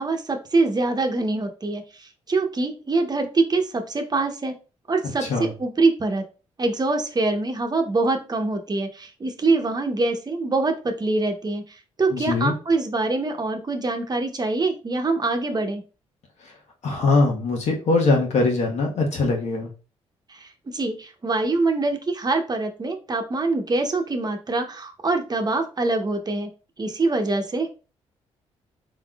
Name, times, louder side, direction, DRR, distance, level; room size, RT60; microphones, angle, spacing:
voice 1, 0.0-4.5 4.9-6.2 6.6-11.6 12.0-15.8 20.3-26.5 26.8-27.7, right 3 dB, 35° right, 5 dB, 0.9 m, -24 dB
voice 2, 5.2-5.5 12.1-12.5 16.8-19.7, left 3 dB, 70° left, 0 dB, 1.4 m, -22 dB
4.2 x 3.6 x 2.4 m, 0.34 s
supercardioid pair, 60°, 12 cm